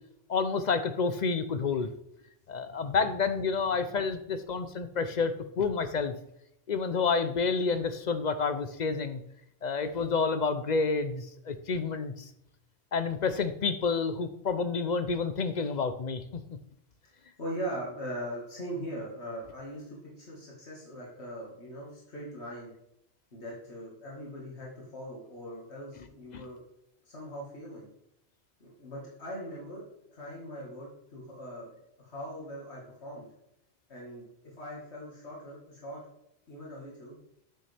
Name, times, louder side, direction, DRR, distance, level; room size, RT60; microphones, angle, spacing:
voice 1, 0.3-1.9 2.5-6.1 6.7-9.2 9.6-12.1 12.9-16.4 26.3-26.4, left 4 dB, 50° left, 10 dB, 0.6 m, -29 dB
voice 2, 17.4-22.7 23.3-26.6 27.1-27.9 28.6-31.7 32.0-33.3 33.9-36.0 36.5-37.2, equal, 75° left, -4 dB, 2.1 m, -41 dB
9.1 x 6.7 x 3.4 m, 0.79 s
omnidirectional pair, 1.1 m